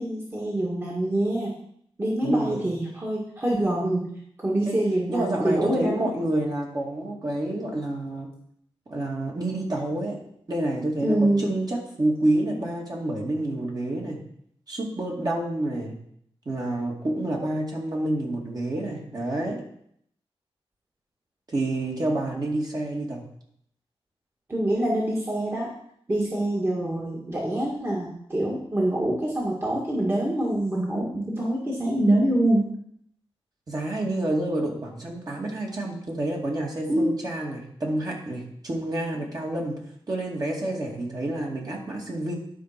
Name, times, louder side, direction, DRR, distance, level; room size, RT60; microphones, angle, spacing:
voice 1, 0.0-1.5 2.0-4.1 4.4-6.1 11.0-11.5 24.5-25.7 26.1-32.7 36.9-37.1, right 1 dB, 25° right, -4 dB, 2.0 m, -25 dB
voice 2, 2.2-2.6 4.7-4.8 5.1-8.3 8.9-10.2 10.5-14.2 14.7-16.0 16.5-19.6 21.5-23.2 33.7-39.8 40.1-42.4, right 1 dB, 40° right, -2 dB, 2.4 m, -28 dB
11.5 x 4.7 x 6.0 m, 0.68 s
wide cardioid pair, 115°, 10 cm